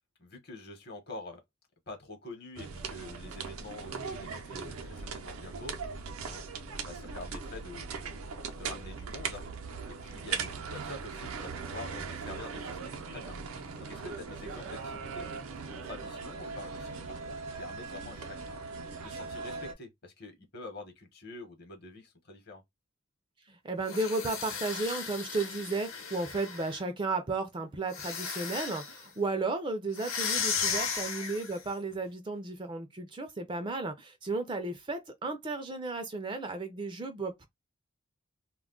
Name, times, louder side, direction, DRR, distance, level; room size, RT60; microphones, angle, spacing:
voice 1, 0.2-1.4 1.9-5.9 6.2-6.4 6.8-8.2 8.6-9.4 9.9-15.3 15.7-22.6 30.6-30.8, left 2 dB, 50° left, 0.9 m, -46 dB
sound 1, 2.6-19.7, right 5 dB, 90° right, 0.5 m, -39 dB
voice 2, 23.5-37.5, right 3 dB, 25° right, 0.4 m, -34 dB
sound 2, 23.8-26.8 27.9-29.0 29.9-31.7, left 6 dB, 80° left, 0.9 m, -35 dB
2.2 x 2.1 x 3.6 m
head